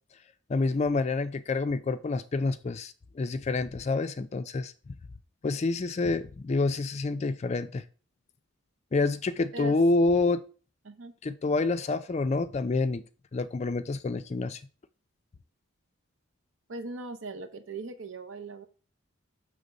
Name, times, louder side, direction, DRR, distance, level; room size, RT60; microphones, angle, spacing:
voice 1, 0.5-4.7 5.4-7.8 8.9-10.4 11.2-13.0 13.3-14.6, left 3 dB, 30° left, 12 dB, 0.3 m, -27 dB
voice 2, 16.7-18.7, right 3 dB, 70° right, 7 dB, 0.8 m, -39 dB
6.7 x 3.4 x 5.1 m, 0.39 s
head